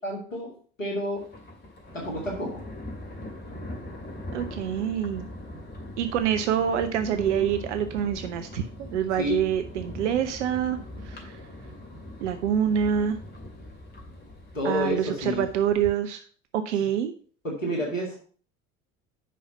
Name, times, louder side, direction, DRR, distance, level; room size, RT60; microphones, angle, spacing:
voice 1, 0.0-1.3 1.9-2.6 9.2-9.5 14.5-15.4 17.4-18.2, equal, 85° left, -1 dB, 1.8 m, -30 dB
Thunder, 1.2-15.9, left 1 dB, 25° left, 2.7 m, -41 dB
voice 2, 4.3-5.3 6.0-10.8 11.0-11.4 12.2-13.2 14.6-16.2 16.5-17.1, right 9 dB, 65° right, 9 dB, 0.7 m, -26 dB
6.1 x 5.6 x 5.8 m, 0.43 s
figure-of-eight pair, 60°, 38 cm